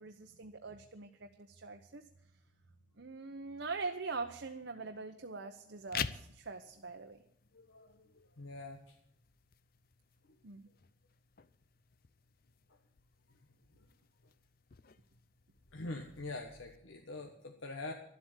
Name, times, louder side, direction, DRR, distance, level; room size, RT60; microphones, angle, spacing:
voice 1, 0.0-2.0 3.0-7.2 10.4-10.7, right 4 dB, 65° right, 4 dB, 0.9 m, -43 dB
sound 1, 5.8-16.8, left 8 dB, 50° left, 0.6 m, -48 dB
voice 2, 7.5-8.9 13.8-13.9 15.7-17.9, left 2 dB, 85° left, 3 dB, 1.4 m, -45 dB
12.5 x 8.1 x 9.0 m, 0.73 s
head